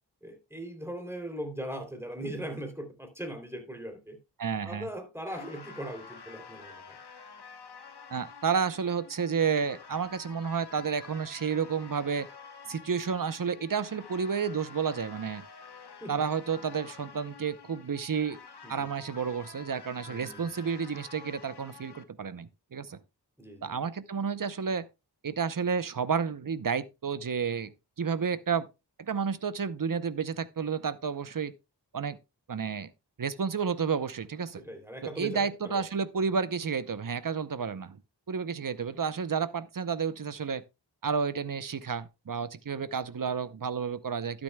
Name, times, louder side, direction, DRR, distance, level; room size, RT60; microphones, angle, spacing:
voice 1, 0.2-4.2 4.6-7.0 16.0-16.2 18.6-18.9 20.1-20.5 23.4-23.8 34.6-35.8, right 1 dB, 5° right, 3.0 m, -39 dB
voice 2, 4.4-4.9 8.1-12.3 12.7-15.5 16.1-18.4 18.7-23.0 23.6-24.9 25.2-27.7 28.0-28.7 29.0-31.5 31.9-32.2 32.5-32.9 33.2-34.6 35.0-38.0 38.3-40.6 41.0-44.4, right 6 dB, 50° right, 0.7 m, -31 dB
sound 1, 5.3-22.0, left 5 dB, 70° left, 1.1 m, -49 dB
12.0 x 9.9 x 2.2 m
wide cardioid pair, 75°, 42 cm